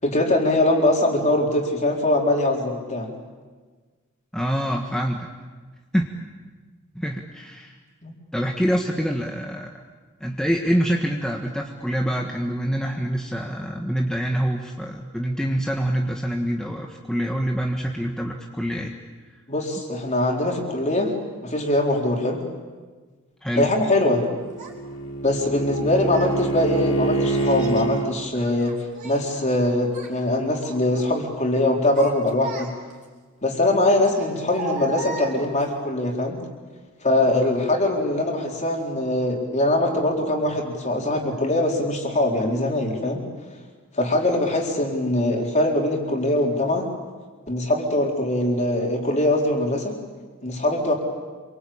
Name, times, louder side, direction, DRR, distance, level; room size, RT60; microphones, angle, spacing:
voice 1, 0.0-3.1 8.0-8.1 19.5-21.1 21.4-22.4 23.5-24.2 25.2-28.8 29.0-32.7 33.4-36.4 37.0-43.3 43.9-46.9 47.5-50.0 50.4-50.9, left 1 dB, 35° left, 1 dB, 4.2 m, -22 dB
voice 2, 4.3-5.3 5.9-6.1 6.9-7.8 8.3-9.7 10.2-18.9 23.4-23.7, equal, 5° left, 1 dB, 1.5 m, -25 dB
Bowed string instrument, 24.2-28.1, right 2 dB, 90° left, 3.5 m, -26 dB
Child speech kid speaking, 24.6-24.7 25.6-26.4 27.3-27.9 28.3-29.6 29.9-30.2 30.6-31.2 31.7-33.0 34.0-35.8, right 4 dB, 35° right, 5.1 m, -36 dB
27.0 x 24.0 x 8.7 m, 1.4 s
head